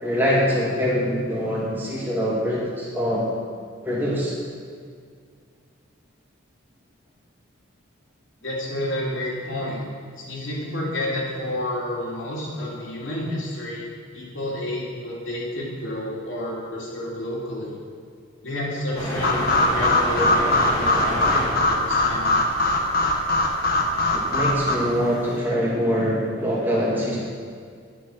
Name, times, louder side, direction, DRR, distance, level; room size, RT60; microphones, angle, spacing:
voice 1, 0.0-3.3 3.8-4.3 24.1-27.2, equal, 10° right, -6 dB, 2.3 m, -24 dB
voice 2, 8.4-9.8 10.3-13.9 14.1-17.7 18.4-22.4, left 1 dB, 70° left, -5 dB, 2.8 m, -30 dB
sound 1, 18.9-25.4, equal, 15° left, 1.9 m, -32 dB
sound 2, 19.2-24.7, left 2 dB, 45° left, 1.1 m, -21 dB
11.0 x 6.1 x 6.4 m, 2.1 s
head